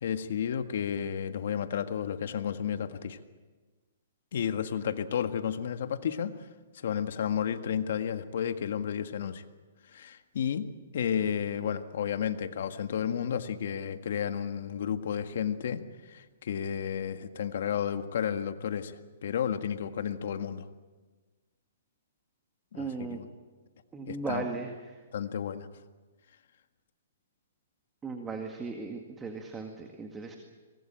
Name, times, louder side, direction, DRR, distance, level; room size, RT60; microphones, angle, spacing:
voice 1, 0.0-3.2 4.3-6.5 6.7-9.4 9.9-20.7 22.7-23.3 24.1-24.5 25.1-25.7, left 8 dB, 65° left, 8 dB, 1.7 m, -32 dB
voice 2, 22.8-23.2 23.9-24.7 28.0-30.4, right 4 dB, 10° right, 4 dB, 2.0 m, -37 dB
23.5 x 20.5 x 8.9 m, 1.3 s
hypercardioid pair, 155°, 0 cm